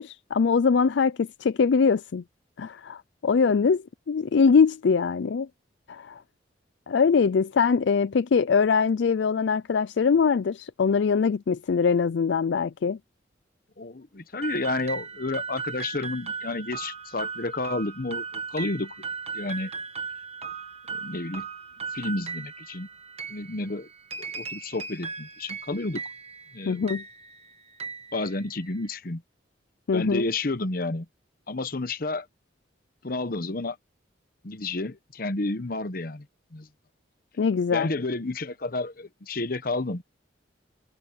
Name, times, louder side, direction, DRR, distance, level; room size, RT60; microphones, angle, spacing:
voice 1, 0.0-2.2 2.6-5.5 5.9-6.2 6.9-13.0 26.7-27.0 29.9-30.2 37.4-37.9, left 5 dB, 70° left, 0.4 m, -22 dB
voice 2, 13.8-18.9 19.3-19.7 20.9-21.5 21.9-22.9 23.3-23.9 24.2-26.0 26.5-26.8 28.1-29.2 29.9-31.1 31.5-32.3 33.0-33.8 34.4-36.3 36.5-36.7 37.7-40.0, left 2 dB, 50° left, 1.0 m, -31 dB
sound 1, 14.4-28.9, right 5 dB, 35° right, 1.6 m, -37 dB
head